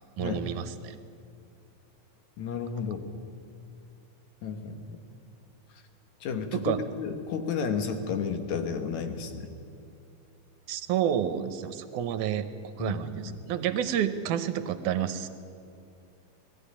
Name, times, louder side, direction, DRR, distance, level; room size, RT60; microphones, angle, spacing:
voice 1, 0.2-1.0 6.5-6.8 10.7-15.3, right 10 dB, 75° right, 10 dB, 2.2 m, -30 dB
voice 2, 2.4-3.1 4.4-5.0 6.2-9.5 12.8-13.4, left 6 dB, 65° left, 6 dB, 2.5 m, -32 dB
19.0 x 14.0 x 10.0 m, 2.4 s
omnidirectional pair, 3.6 m